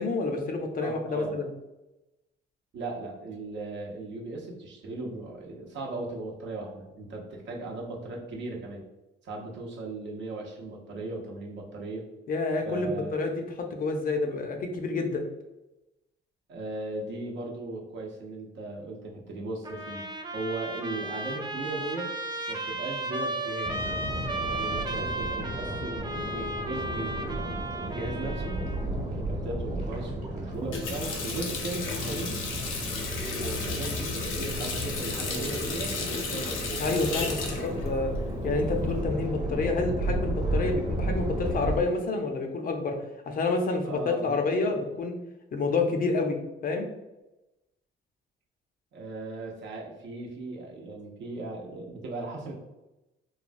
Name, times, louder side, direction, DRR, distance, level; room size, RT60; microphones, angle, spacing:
voice 1, 0.0-1.5 12.3-15.2 36.8-38.1 38.4-45.1 45.5-46.9, left 3 dB, 45° left, 4 dB, 0.5 m, -29 dB
voice 2, 0.8-1.4 2.7-8.8 9.2-12.0 12.6-13.1 16.5-22.1 22.5-23.9 24.5-28.6 29.1-32.4 33.3-36.9 43.8-44.4 48.9-52.5, right 2 dB, 65° right, 0 dB, 0.7 m, -37 dB
Trumpet, 19.6-28.8, right 2 dB, 20° right, 0.4 m, -34 dB
sound 1, 23.6-41.8, right 1 dB, 35° right, 1.0 m, -33 dB
Water tap faucet, 30.5-39.0, left 4 dB, 90° left, 0.5 m, -34 dB
3.1 x 2.2 x 2.5 m, 0.98 s
cardioid pair, 90°, 20 cm